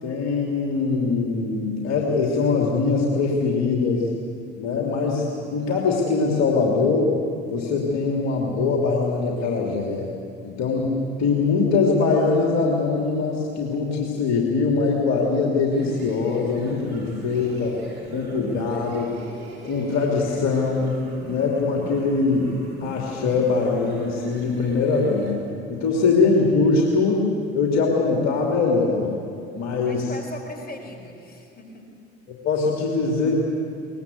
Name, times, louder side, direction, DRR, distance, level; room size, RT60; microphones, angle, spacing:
voice 1, 0.0-4.1 4.6-7.1 7.5-10.1 10.4-17.8 18.1-19.1 19.6-22.5 22.8-25.4 25.7-27.3 27.5-29.1 29.5-30.1 32.3-33.3, left 4 dB, 55° left, -1 dB, 3.0 m, -22 dB
sound 1, 15.6-25.4, right 1 dB, 50° right, 5.7 m, -41 dB
voice 2, 29.9-32.0, left 2 dB, 30° left, 3 dB, 4.7 m, -39 dB
22.0 x 20.0 x 8.2 m, 2.5 s
figure-of-eight pair, 55°, 33 cm